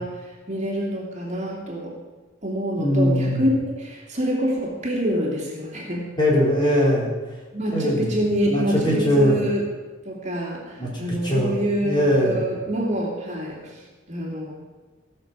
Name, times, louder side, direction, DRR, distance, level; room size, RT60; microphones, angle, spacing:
voice 1, 0.0-2.0 2.4-6.2 7.5-9.7 10.0-13.8 14.1-14.5, equal, 35° right, -2 dB, 2.6 m, -26 dB
voice 2, 2.8-3.4 6.2-7.1 7.7-8.1 8.5-9.4 10.8-11.6 11.8-12.4, equal, 25° left, -4 dB, 3.8 m, -21 dB
16.5 x 6.7 x 7.3 m, 1.3 s
head